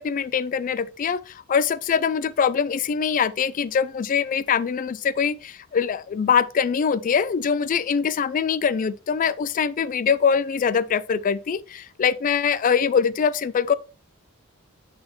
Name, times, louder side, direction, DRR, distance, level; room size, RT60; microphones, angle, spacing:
voice 1, 0.0-13.7, left 6 dB, 40° left, 0.3 m, -23 dB
9.5 x 4.2 x 3.1 m
head